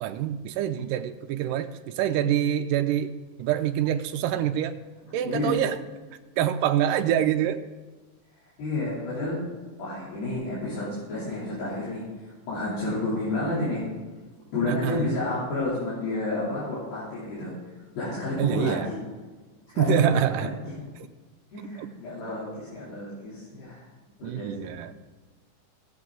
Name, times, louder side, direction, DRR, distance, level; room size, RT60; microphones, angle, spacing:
voice 1, 0.0-3.1 3.4-4.8 5.1-5.8 6.4-7.6 14.7-15.1 18.4-18.9 19.8-20.5 21.8-21.9 24.2-24.9, right 10 dB, 80° right, 8 dB, 2.1 m, -25 dB
voice 2, 5.2-5.6 8.6-9.4 9.8-13.8 14.5-17.5 18.0-19.0 19.7-20.0 20.4-20.5 21.5-23.8 24.2-24.7, left 2 dB, 85° left, -9 dB, 5.0 m, -30 dB
18.0 x 7.5 x 3.8 m, 1.3 s
omnidirectional pair, 4.1 m